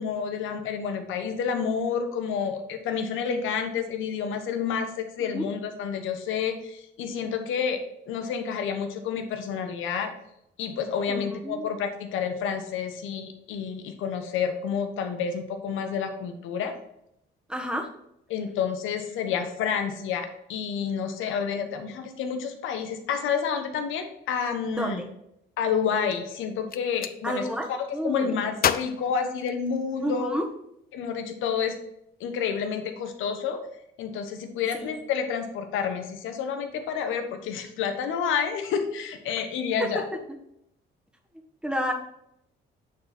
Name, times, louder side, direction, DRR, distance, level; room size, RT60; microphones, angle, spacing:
voice 1, 0.0-7.8 8.1-10.1 10.6-16.7 18.3-25.0 25.6-30.3 30.9-31.8 32.2-33.6 34.0-40.0, left 7 dB, 90° left, 6 dB, 1.1 m, -29 dB
voice 2, 11.1-11.7 17.5-17.9 24.7-25.1 27.2-27.7 27.9-28.3 30.0-30.5 34.7-34.9 39.8-39.9 41.6-41.9, equal, 5° right, 2 dB, 1.4 m, -30 dB
Gunshot gunfire, 26.5-27.2 28.6-30.1, left 9 dB, 50° left, 0.5 m, -29 dB
8.5 x 4.3 x 4.3 m, 0.78 s
cardioid pair, 90°, 20 cm